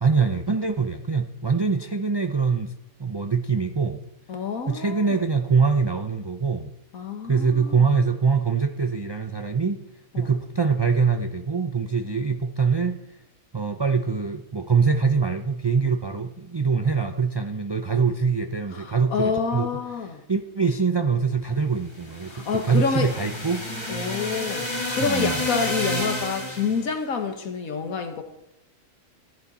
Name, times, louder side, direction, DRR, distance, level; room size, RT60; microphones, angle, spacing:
voice 1, 0.0-2.7 3.0-4.0 4.7-6.7 7.2-9.8 10.2-13.0 13.5-19.7 20.3-23.6 25.0-25.4, right 5 dB, 40° right, 6 dB, 0.4 m, -23 dB
voice 2, 4.3-5.2 6.9-7.9 10.1-10.3 18.7-20.2 22.3-23.1 23.9-24.7 24.9-28.2, left 5 dB, 75° left, 6 dB, 1.9 m, -28 dB
sound 1, 21.9-26.9, left 1 dB, 20° left, 2.4 m, -30 dB
14.5 x 10.5 x 4.2 m, 0.87 s
omnidirectional pair, 1.5 m